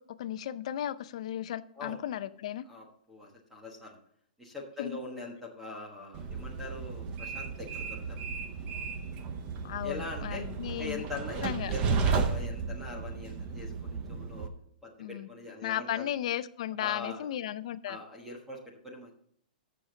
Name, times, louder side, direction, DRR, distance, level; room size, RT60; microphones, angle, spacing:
voice 1, 0.0-2.7 4.8-5.0 9.6-11.0 11.4-11.7 15.0-15.3 15.6-18.0, left 11 dB, 45° left, 14 dB, 0.5 m, -35 dB
voice 2, 2.6-4.0 4.4-8.2 9.8-10.5 10.8-14.5 14.8-16.1 16.8-17.3 17.9-19.1, left 3 dB, 5° right, 0 dB, 1.3 m, -42 dB
Train, 6.1-14.5, right 5 dB, 20° right, 0.7 m, -34 dB
14.5 x 6.5 x 3.9 m, 0.65 s
hypercardioid pair, 175°, 5 cm